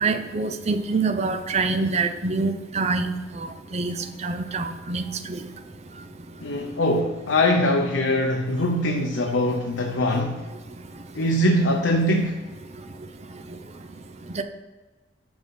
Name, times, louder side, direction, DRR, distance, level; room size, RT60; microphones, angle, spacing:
voice 1, 0.0-3.1 3.7-4.0 4.2-5.0 5.3-5.4 14.4-14.5, right 4 dB, 35° right, 0.6 m, -25 dB
voice 2, 6.4-10.4 11.2-12.4, left 1 dB, 80° left, 0.8 m, -22 dB
7.1 x 6.2 x 5.5 m
head